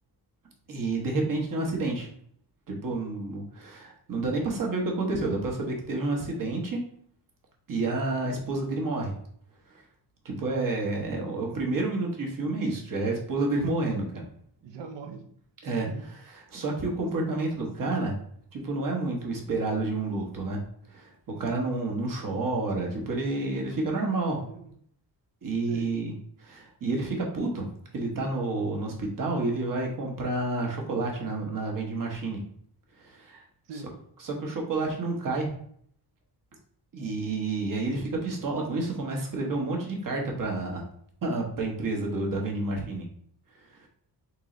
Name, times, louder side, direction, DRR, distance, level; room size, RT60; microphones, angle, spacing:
voice 1, 0.7-2.1 2.7-6.8 7.7-9.2 9.7-9.8 10.2-14.2 15.6-15.9 16.5-18.2 18.5-20.6 20.9-24.4 25.4-26.1 26.4-27.7 27.9-32.4 33.0-33.4 34.2-35.5 36.9-40.8 41.2-43.1 43.7-43.9, right 2 dB, 50° right, 0 dB, 1.2 m, -29 dB
voice 2, 14.6-15.3 15.9-16.0 24.4-24.7 25.6-25.9 33.7-33.9, right 5 dB, 85° right, 5 dB, 0.8 m, -40 dB
3.9 x 3.1 x 3.8 m, 0.63 s
wide cardioid pair, 145°, 42 cm